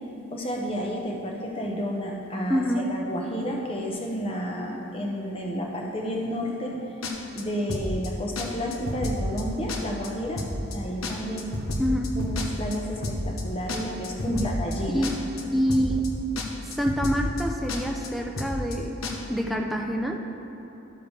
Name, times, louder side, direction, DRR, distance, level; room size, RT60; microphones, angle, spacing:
voice 1, 0.3-2.6 2.9-6.8 7.3-10.5 10.7-11.5 12.2-15.0, equal, 25° left, 0 dB, 0.9 m, -31 dB
voice 2, 2.5-2.9 11.8-12.2 14.3-14.6 14.9-15.2 15.5-16.1 16.6-19.0 19.3-20.2, equal, ahead, 1 dB, 0.3 m, -26 dB
sound 1, 7.0-7.4 7.7-8.1 8.4-8.5 8.7-9.4 9.7-10.1 10.4-10.8 11.0-12.8 13.0-13.4 13.7-14.8 15.0-15.4 15.7-16.1 16.4-16.5 16.7-17.4 17.7-18.1 18.4-18.8 19.0-19.1, left 2 dB, 90° left, 1.0 m, -30 dB
12.5 x 6.8 x 3.2 m, 2.9 s
head